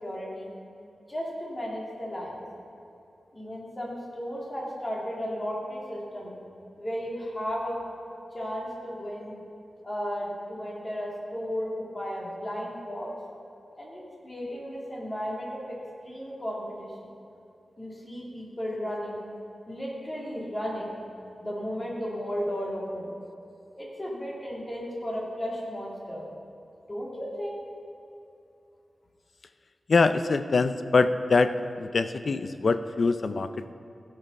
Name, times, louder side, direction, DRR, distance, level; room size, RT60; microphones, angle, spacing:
voice 1, 0.0-0.5 1.1-2.4 3.3-6.3 6.8-7.8 8.3-9.3 9.8-13.1 13.8-15.8 16.0-16.9 17.8-19.2 19.7-21.0 21.4-23.1 23.8-26.2 26.9-27.6, equal, 25° left, -4 dB, 2.6 m, -34 dB
voice 2, 29.9-31.5 31.8-33.7, left 4 dB, 55° left, 10 dB, 0.4 m, -24 dB
16.0 x 6.6 x 5.4 m, 2.6 s
wide cardioid pair, 130°, 0 cm